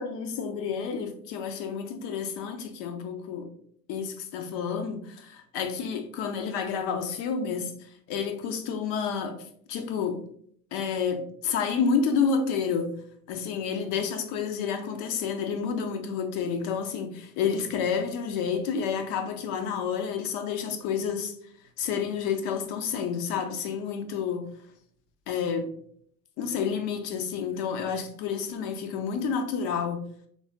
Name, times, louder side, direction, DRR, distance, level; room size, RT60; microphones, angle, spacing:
voice 1, 0.0-3.5 3.9-9.4 9.7-10.2 10.7-12.9 13.3-21.4 21.8-24.5 25.3-25.7 26.4-30.0, left 6 dB, 60° left, 0.9 m, -30 dB
4.0 x 3.5 x 3.6 m
figure-of-eight pair, 60°, 48 cm